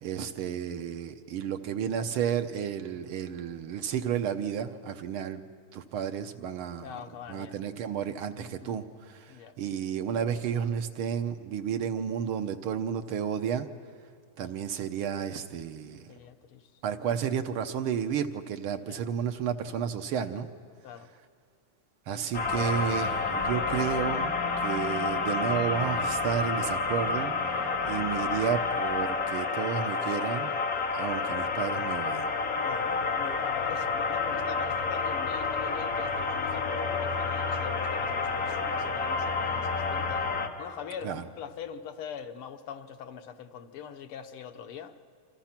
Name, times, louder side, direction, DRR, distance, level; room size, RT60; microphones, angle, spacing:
voice 1, 0.0-5.4 5.7-13.7 14.4-16.1 16.8-20.5 22.1-27.3 27.8-30.5 30.9-32.3 41.0-41.2, right 8 dB, 80° right, 7 dB, 1.8 m, -32 dB
voice 2, 6.8-7.7 8.4-8.8 9.3-9.6 16.1-16.6 17.0-17.2 18.8-19.0 20.8-21.1 27.4-27.8 32.6-40.3 40.6-44.9, left 8 dB, 85° left, 6 dB, 2.0 m, -43 dB
sound 1, 22.3-40.5, left 4 dB, 45° left, 1.7 m, -29 dB
28.5 x 26.0 x 5.9 m, 2.2 s
omnidirectional pair, 2.4 m